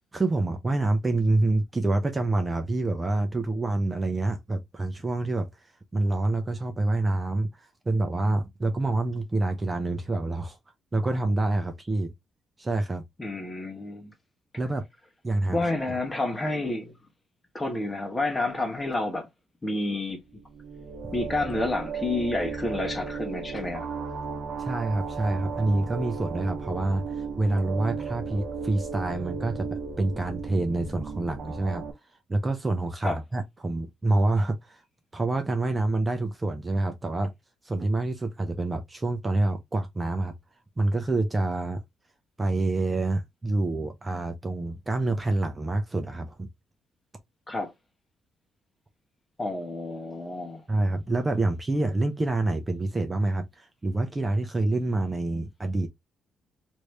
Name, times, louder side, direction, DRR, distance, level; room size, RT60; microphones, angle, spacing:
voice 1, 0.1-5.5 5.9-10.6 10.9-12.1 12.6-13.0 14.6-14.8 15.2-15.6 15.9-16.0 24.6-31.8 32.3-34.8 35.1-37.3 37.6-40.3 40.8-41.8 42.4-46.5 50.7-55.9, right 2 dB, 25° right, 0.7 m, -27 dB
voice 2, 13.2-14.1 15.5-16.9 17.5-19.3 19.6-20.2 21.1-23.9 33.0-33.2 47.5-47.7 49.4-50.6, left 2 dB, 20° left, 1.1 m, -29 dB
sound 1, 20.3-31.9, right 5 dB, 60° right, 0.8 m, -35 dB
3.1 x 2.7 x 3.2 m
cardioid pair, 90°, 0 cm